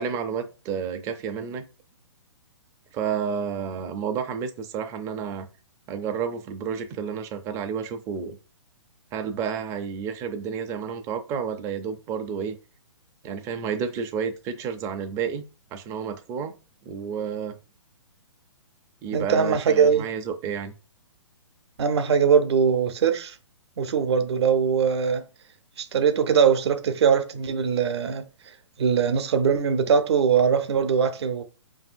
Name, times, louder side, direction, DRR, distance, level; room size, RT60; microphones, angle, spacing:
voice 1, 0.0-1.6 2.9-5.5 5.9-8.4 9.1-12.6 13.2-15.4 15.7-16.5 16.9-17.6 19.0-20.7, right 7 dB, 20° right, 0.4 m, -30 dB
voice 2, 19.1-20.1 21.8-23.4 23.8-25.2 25.8-28.3 28.8-31.4, right 7 dB, 60° right, 0.6 m, -21 dB
5.3 x 2.6 x 2.5 m
hypercardioid pair, 140°, 16 cm